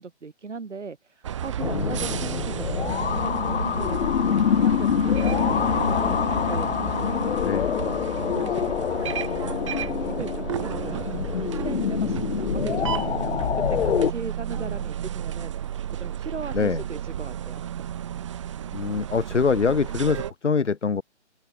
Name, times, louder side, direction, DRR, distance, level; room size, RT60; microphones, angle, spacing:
voice 1, 0.0-6.2 6.5-9.6 9.9-17.7, right 4 dB, 80° right, 5.5 m, -39 dB
sound 1, 1.2-20.3, right 10 dB, 25° right, 0.8 m, -32 dB
sound 2, 1.6-14.1, left 8 dB, 60° left, 0.7 m, -25 dB
voice 2, 1.7-2.2 7.4-7.8 10.6-11.2 14.6-14.7 16.5-16.8 18.7-21.0, left 5 dB, 80° left, 2.4 m, -25 dB
hypercardioid pair, 155°, 35 cm